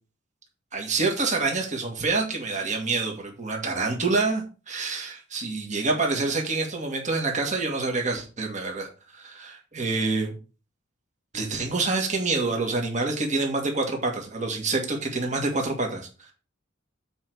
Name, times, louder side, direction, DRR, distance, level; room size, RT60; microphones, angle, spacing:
voice 1, 0.7-8.9 9.1-10.3 11.3-16.1, right 3 dB, 40° right, 1 dB, 1.9 m, -27 dB
7.9 x 4.6 x 6.2 m, 0.33 s
head